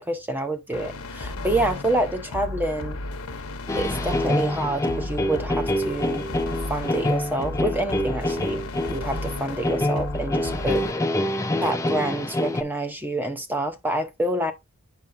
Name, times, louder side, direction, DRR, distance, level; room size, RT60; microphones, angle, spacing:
voice 1, 0.0-3.0 3.8-6.3 6.7-14.5, right 1 dB, 10° right, 0.8 m, -28 dB
sound 1, 0.7-10.9, left 2 dB, 75° left, 0.9 m, -34 dB
sound 2, 3.7-12.6, left 1 dB, 15° left, 0.5 m, -26 dB
8.1 x 5.5 x 2.6 m
head